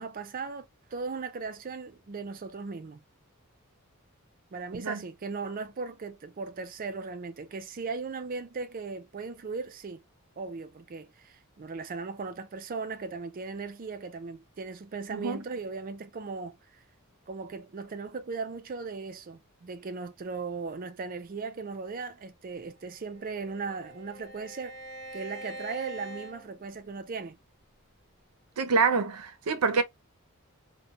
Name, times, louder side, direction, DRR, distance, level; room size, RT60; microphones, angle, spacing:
voice 1, 0.0-3.0 4.5-10.0 10.4-16.6 17.3-24.8 25.1-27.4, right 4 dB, 40° right, 0.4 m, -37 dB
Bowed string instrument, 22.8-27.3, right 1 dB, 40° left, 1.1 m, -45 dB
voice 2, 28.6-29.8, right 4 dB, 90° right, 0.6 m, -26 dB
2.9 x 2.2 x 2.3 m
head